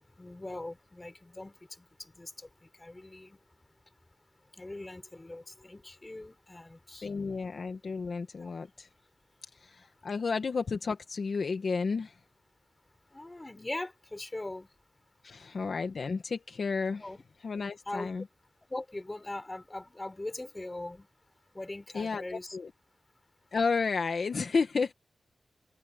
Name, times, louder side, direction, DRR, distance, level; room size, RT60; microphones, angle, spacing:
voice 1, 0.2-3.4 4.5-7.1 8.4-8.5 13.1-14.7 17.0-17.2 17.9-18.1 18.7-21.1 21.5-22.6, left 2 dB, 15° left, 4.0 m, -41 dB
voice 2, 7.0-8.9 9.5-12.2 15.2-17.1 17.4-18.2 21.9-22.7 23.5-24.9, left 4 dB, 50° left, 1.6 m, -32 dB
open air
wide cardioid pair, 150°, 0 cm